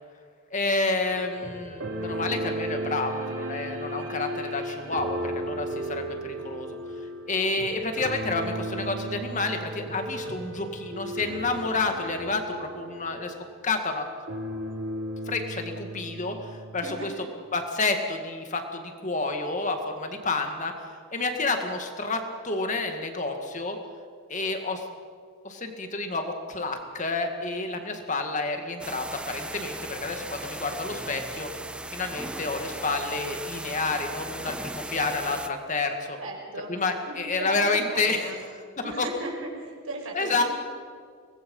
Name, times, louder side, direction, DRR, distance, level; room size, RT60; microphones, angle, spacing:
voice 1, 0.5-6.8 7.3-13.3 13.6-14.1 15.3-17.1 17.5-20.7 21.1-23.8 24.3-24.9 25.4-31.5 31.9-36.2 36.7-38.5 39.0-39.1 40.1-40.4, left 3 dB, 35° left, 5 dB, 2.1 m, -29 dB
sound 1, 1.0-14.0 14.3-17.1, right 1 dB, 70° right, 2.8 m, -35 dB
voice 2, 16.8-17.1 36.2-36.7 37.1-38.4 38.8-40.4, right 2 dB, 90° right, 0 dB, 5.5 m, -37 dB
sound 2, 28.8-35.5, right 1 dB, 5° right, 0.6 m, -37 dB
24.0 x 19.5 x 5.6 m, 2.1 s
head